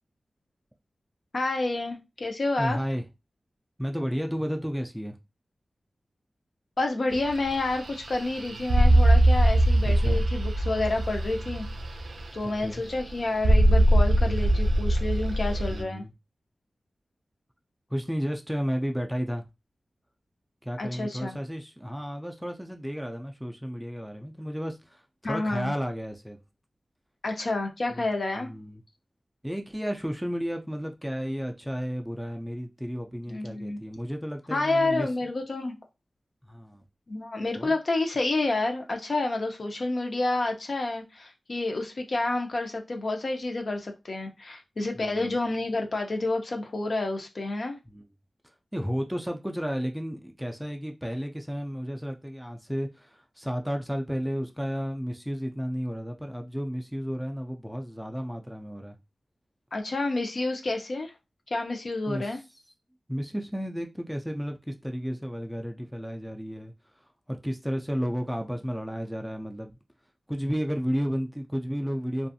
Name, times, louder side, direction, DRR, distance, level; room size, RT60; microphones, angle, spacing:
voice 1, 1.3-2.8 6.8-11.7 12.3-16.0 20.8-21.4 25.2-25.7 27.2-28.5 33.3-33.8 34.5-35.7 37.1-47.8 59.7-61.1 61.5-62.4, left 2 dB, 55° left, 0.6 m, -29 dB
voice 2, 2.6-3.0 3.8-5.2 9.8-10.2 12.4-12.8 15.7-16.1 17.9-19.4 20.6-26.4 27.9-28.1 28.4-28.8 29.4-35.1 36.5-36.8 37.6-37.7 44.9-45.4 47.9-48.0 48.7-59.0 62.1-62.4 63.1-66.7 67.3-69.7 70.3-72.3, equal, ahead, 0.3 m, -32 dB
sound 1, 7.1-15.8, right 1 dB, 80° right, 0.3 m, -22 dB
2.5 x 2.3 x 2.6 m
wide cardioid pair, 110°, 0 cm